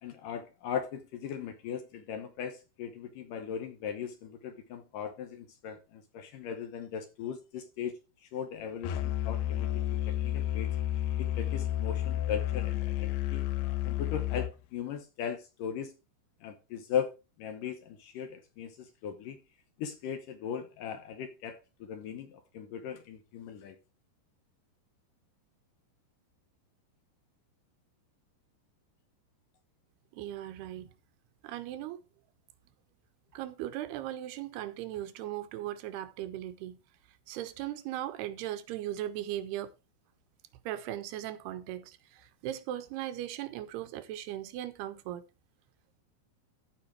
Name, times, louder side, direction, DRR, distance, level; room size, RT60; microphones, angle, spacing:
voice 1, 0.0-7.9 8.2-9.7 10.0-10.7 11.2-13.5 13.9-16.0 16.4-17.1 17.4-19.4 19.8-23.8, left 8 dB, 70° left, 2.3 m, -38 dB
Musical instrument, 8.8-14.5, left 13 dB, 90° left, 3.0 m, -31 dB
voice 2, 30.1-30.9 31.4-32.0 33.3-36.8 37.3-39.7 40.7-45.2, right 13 dB, 80° right, 2.9 m, -38 dB
14.0 x 5.2 x 4.6 m
omnidirectional pair, 4.6 m